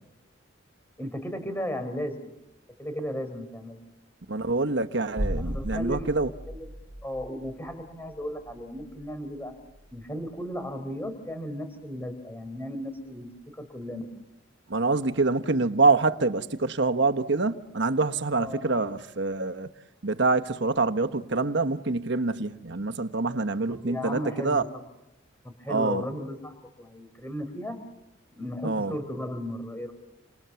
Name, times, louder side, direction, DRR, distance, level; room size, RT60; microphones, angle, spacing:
voice 1, 1.0-2.3 2.8-3.8 5.4-6.7 7.0-9.5 9.9-14.1 18.3-18.7 23.7-24.7 25.4-27.8 28.3-29.9, equal, 10° left, 4.3 m, -35 dB
voice 2, 4.3-6.3 14.7-19.7 20.0-24.6 25.7-26.0 28.6-28.9, right 3 dB, 65° right, 1.3 m, -26 dB
sound 1, 5.2-10.9 11.2-11.3, equal, 10° right, 3.4 m, -37 dB
29.5 x 28.0 x 7.1 m
head